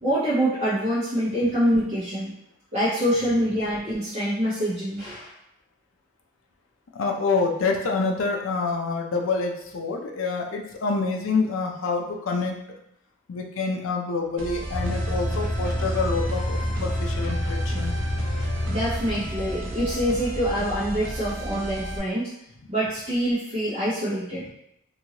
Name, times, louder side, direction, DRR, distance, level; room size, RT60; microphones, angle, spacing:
voice 1, 0.0-2.3 2.7-5.3 18.7-22.3 22.7-24.5, equal, 30° right, -11 dB, 0.9 m, -25 dB
voice 2, 6.9-12.6 13.3-17.9 19.2-19.3, left 4 dB, 80° left, 2 dB, 0.5 m, -27 dB
sound 1, 14.4-22.0, right 1 dB, 75° right, 0.6 m, -34 dB
sound 2, 14.7-21.7, equal, ahead, 1.5 m, -29 dB
2.9 x 2.6 x 2.8 m, 0.80 s
head